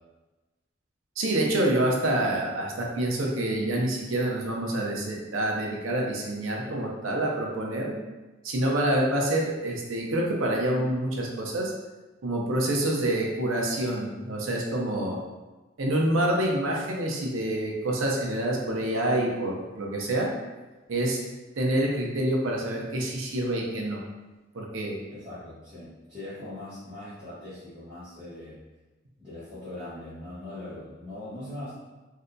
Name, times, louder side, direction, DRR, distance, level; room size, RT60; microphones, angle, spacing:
voice 1, 1.2-7.9 8.4-11.7 12.2-15.2 15.8-20.3 20.9-21.2 21.6-24.0 24.5-25.0, right 1 dB, 85° right, -1 dB, 0.7 m, -27 dB
voice 2, 25.1-28.6 29.2-31.7, left 1 dB, 20° right, -17 dB, 1.2 m, -41 dB
3.8 x 2.7 x 2.2 m, 1.1 s
head